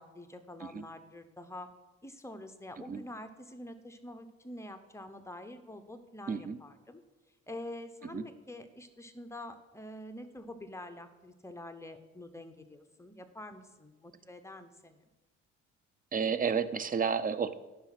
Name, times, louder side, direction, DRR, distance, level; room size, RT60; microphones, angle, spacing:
voice 1, 0.0-1.7 2.0-7.0 7.5-15.1, left 1 dB, 10° left, 7 dB, 0.9 m, -46 dB
voice 2, 6.3-6.6 8.1-8.2 16.1-17.5, right 6 dB, 30° right, 14 dB, 0.5 m, -31 dB
10.0 x 5.4 x 5.9 m, 1.1 s
cardioid pair, 90°, 30 cm